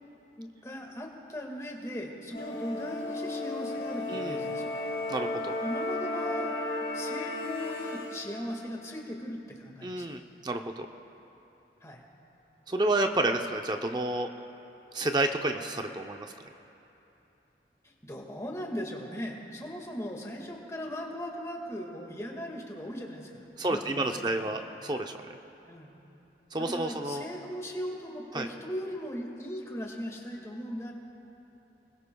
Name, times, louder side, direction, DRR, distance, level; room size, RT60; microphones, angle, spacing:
voice 1, 0.4-4.8 5.6-6.6 6.9-10.1 11.8-12.0 18.0-23.3 23.6-24.6 25.7-25.9 26.6-30.9, equal, 20° left, 0 dB, 1.8 m, -38 dB
sound 1, 2.3-8.2, left 2 dB, 55° left, 3.7 m, -34 dB
voice 2, 5.1-5.5 9.8-10.9 12.7-14.3 14.9-16.3 23.6-25.4 26.5-27.3 28.3-28.5, right 2 dB, 25° right, 5 dB, 0.6 m, -30 dB
29.5 x 20.5 x 2.3 m, 3.0 s
head